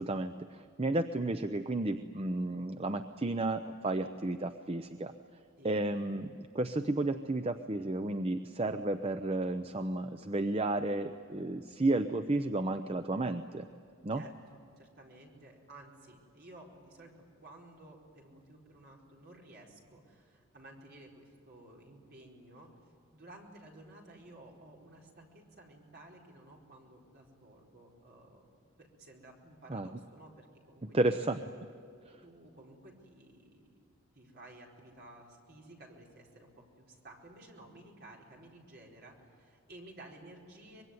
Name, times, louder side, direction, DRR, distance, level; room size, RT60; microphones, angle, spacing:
voice 1, 0.0-5.1 5.6-13.7 14.0-14.2 29.7-29.9 30.9-31.4 32.0-32.2, right 2 dB, 25° right, 9 dB, 0.6 m, -32 dB
voice 2, 14.1-22.7 23.1-28.5 28.8-31.0 32.2-33.6 34.1-40.8, right 1 dB, 50° right, -1 dB, 4.8 m, -54 dB
24.5 x 22.0 x 9.6 m, 2.4 s
head